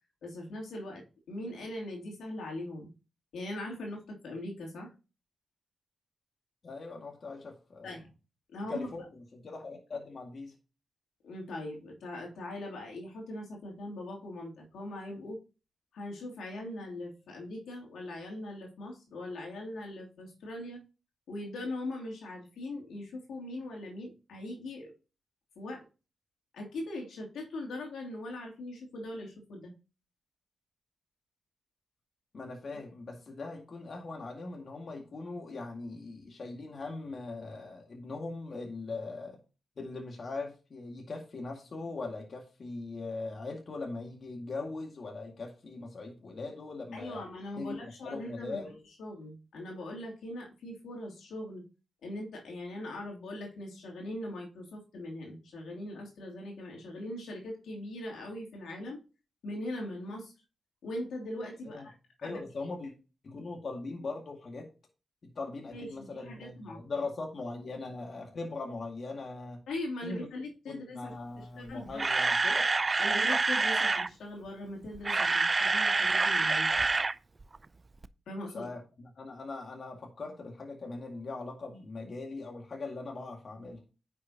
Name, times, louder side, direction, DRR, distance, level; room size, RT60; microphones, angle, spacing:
voice 1, 0.2-2.9 3.3-4.9 7.8-8.1 8.5-8.9 11.2-15.4 15.9-20.8 21.3-24.9 25.6-25.8 26.5-29.7 46.9-48.7 49.0-51.6 52.0-59.0 59.4-60.3 60.8-62.4 65.7-67.0 69.7-72.1 73.0-76.7 78.3-78.7, left 1 dB, 90° left, 0 dB, 2.9 m, -41 dB
voice 2, 6.6-8.0 8.7-10.5 32.3-39.4 39.8-47.3 47.6-48.8 61.7-61.9 62.2-62.9 63.2-64.7 65.2-69.6 70.0-70.3 70.7-72.7 78.5-83.8, left 3 dB, 55° left, 1 dB, 2.1 m, -40 dB
Camera, 71.7-74.1 74.9-77.1 77.4-77.6 78.0-78.1, right 3 dB, 35° right, 0.5 m, -27 dB
9.4 x 6.5 x 2.9 m, 0.32 s
cardioid pair, 75°, 0 cm